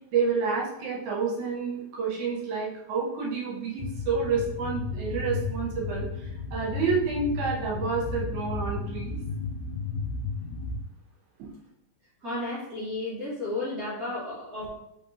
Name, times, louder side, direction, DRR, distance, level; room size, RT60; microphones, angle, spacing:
voice 1, 0.1-9.1, right 5 dB, 70° right, -4 dB, 2.4 m, -29 dB
sound 1, 3.8-10.8, left 4 dB, 80° left, 1.6 m, -33 dB
voice 2, 12.2-14.7, left 2 dB, 45° right, -9 dB, 1.1 m, -33 dB
4.9 x 3.4 x 2.8 m, 0.84 s
omnidirectional pair, 3.8 m